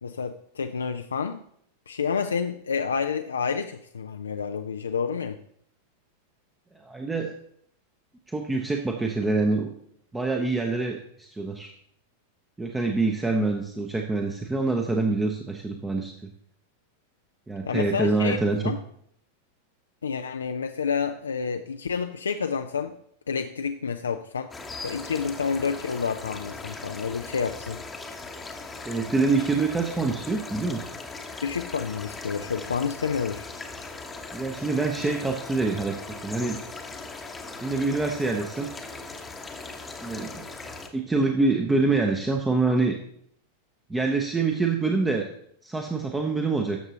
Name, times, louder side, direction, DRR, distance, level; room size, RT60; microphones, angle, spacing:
voice 1, 0.0-1.4 1.9-5.4 17.7-18.4 18.6-18.8 20.0-22.9 23.3-24.5 24.8-27.8 31.4-33.5, left 6 dB, 70° left, 6 dB, 0.4 m, -29 dB
voice 2, 6.8-7.3 8.3-9.7 10.1-11.7 12.6-16.3 17.5-18.6 28.8-30.9 34.3-36.6 37.6-38.7 40.0-40.4 40.9-43.0 43.9-45.3 45.6-46.8, right 3 dB, 10° right, 3 dB, 0.8 m, -26 dB
sound 1, 24.5-40.9, left 3 dB, 10° left, 1.0 m, -39 dB
12.5 x 6.7 x 2.9 m, 0.67 s
figure-of-eight pair, 90°, 0 cm